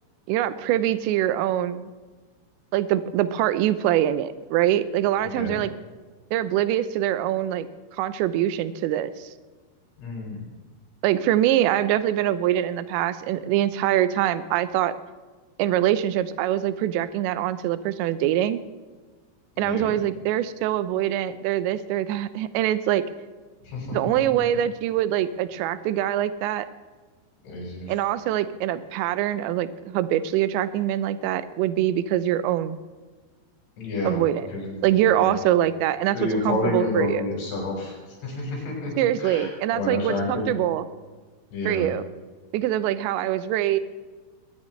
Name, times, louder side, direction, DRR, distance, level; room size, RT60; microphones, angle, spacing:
voice 1, 0.3-1.9 2.7-5.7 6.3-7.7 8.0-9.3 11.0-15.0 15.6-18.6 19.6-23.0 23.9-26.7 27.9-32.8 34.0-34.4 34.8-36.2 36.4-37.2 39.0-40.8 41.7-42.1 42.5-43.8, right 12 dB, 75° right, 12 dB, 2.9 m, -24 dB
voice 2, 5.2-5.6 10.0-10.4 19.6-20.0 23.6-24.4 27.4-27.9 33.8-34.2 34.5-34.9 35.2-35.4 36.1-38.9 39.2-40.5 41.5-41.9, left 2 dB, 90° left, -3 dB, 9.5 m, -30 dB
22.5 x 19.5 x 3.3 m, 1.4 s
omnidirectional pair, 5.7 m